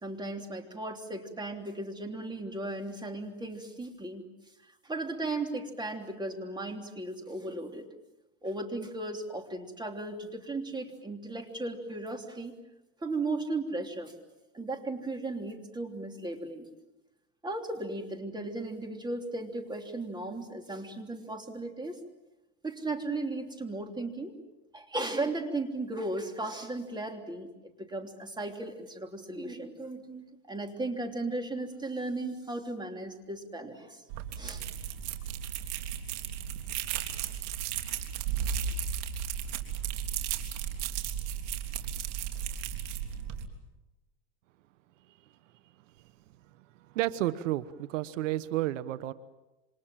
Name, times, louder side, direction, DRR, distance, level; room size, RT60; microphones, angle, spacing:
voice 1, 0.0-4.2 4.8-7.9 8.4-12.5 13.0-14.1 14.5-16.7 17.4-22.0 22.6-24.3 24.7-34.0 34.3-34.6, right 2 dB, 10° right, 4 dB, 3.3 m, -36 dB
sound 1, 34.1-43.5, right 9 dB, 65° right, 3.6 m, -35 dB
voice 2, 46.8-49.1, right 15 dB, 85° right, 14 dB, 1.2 m, -31 dB
28.0 x 26.0 x 7.6 m, 1.0 s
supercardioid pair, 125°, 37 cm